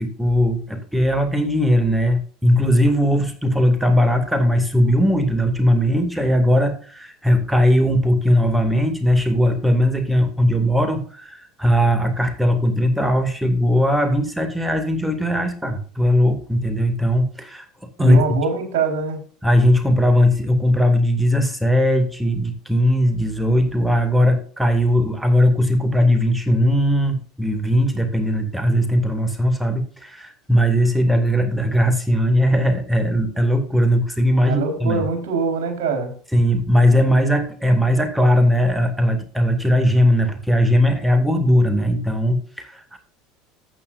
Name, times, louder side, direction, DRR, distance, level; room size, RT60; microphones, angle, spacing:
voice 1, 0.0-17.6 18.0-18.2 19.4-35.0 36.3-43.0, equal, 5° right, 7 dB, 2.3 m, -19 dB
voice 2, 18.0-19.2 34.4-36.1, right 4 dB, 65° right, 4 dB, 4.2 m, -23 dB
14.0 x 8.5 x 2.6 m, 0.41 s
hypercardioid pair, 75°, 0 cm